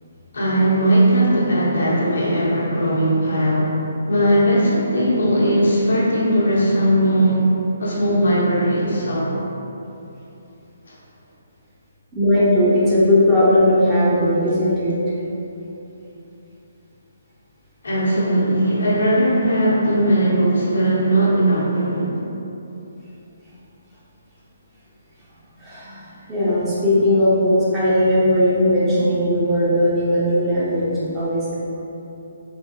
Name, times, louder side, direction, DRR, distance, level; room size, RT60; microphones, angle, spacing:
voice 1, 0.3-3.8 4.1-9.3 10.9-11.0 17.8-22.1, right 1 dB, 70° left, -6 dB, 1.0 m, -18 dB
voice 2, 12.1-15.0 25.6-31.5, left 1 dB, 15° right, -10 dB, 1.1 m, -18 dB
3.9 x 3.4 x 2.7 m, 2.9 s
figure-of-eight pair, 140°, 0 cm